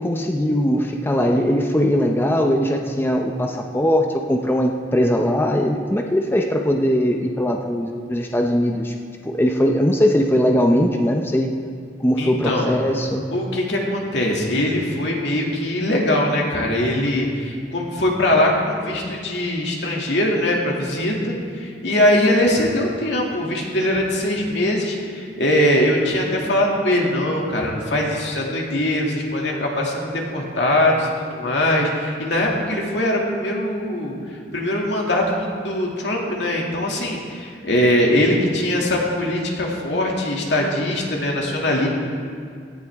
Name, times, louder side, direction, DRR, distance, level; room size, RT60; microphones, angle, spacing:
voice 1, 0.0-8.9 9.2-11.5 12.0-13.2, equal, 15° left, 2 dB, 0.7 m, -20 dB
voice 2, 12.2-12.7 13.3-41.9, left 1 dB, 80° left, -2 dB, 2.4 m, -21 dB
17.0 x 12.5 x 3.6 m, 2.2 s
head